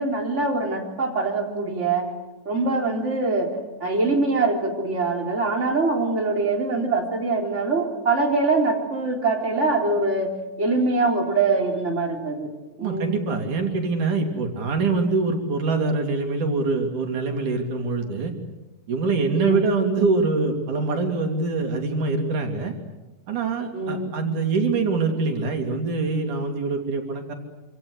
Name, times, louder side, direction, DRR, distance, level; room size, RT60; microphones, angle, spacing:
voice 1, 0.0-2.1 2.5-3.5 3.8-10.3 10.6-12.5 12.8-13.1 19.3-19.7 23.7-24.2, right 3 dB, 20° right, 1 dB, 4.1 m, -23 dB
voice 2, 12.8-18.3 18.9-22.7 23.3-27.3, right 4 dB, 75° right, 4 dB, 4.4 m, -24 dB
27.0 x 27.0 x 8.0 m, 1.1 s
omnidirectional pair, 3.6 m